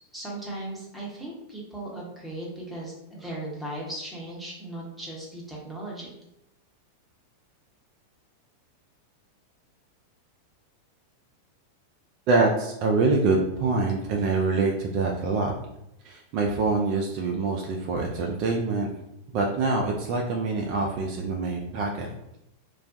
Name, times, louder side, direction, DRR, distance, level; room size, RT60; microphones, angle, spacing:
voice 1, 0.1-6.1, right 1 dB, 5° right, -5 dB, 0.8 m, -37 dB
voice 2, 12.3-15.5 16.0-18.9 19.3-22.1, right 3 dB, 45° right, 0 dB, 0.3 m, -25 dB
2.3 x 2.1 x 2.5 m, 0.83 s
figure-of-eight pair, 90°, 0 cm